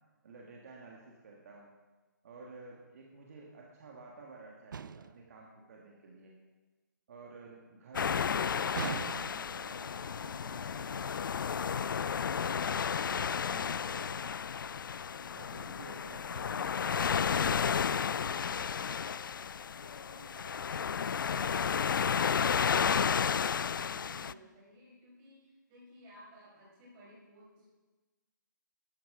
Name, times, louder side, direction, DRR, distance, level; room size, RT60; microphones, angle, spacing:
voice 1, 0.2-1.7 2.2-6.3 7.1-14.5 15.3-18.3, right 3 dB, 45° right, -1 dB, 1.9 m, -52 dB
sound 1, 4.7-5.3 8.7-9.6, right 6 dB, 75° right, 0.5 m, -39 dB
sound 2, 7.9-24.3, left 7 dB, 80° left, 0.4 m, -32 dB
voice 2, 19.7-27.7, equal, 25° right, -5 dB, 5.2 m, -56 dB
13.0 x 10.5 x 5.0 m, 1.2 s
hypercardioid pair, 160°, 11 cm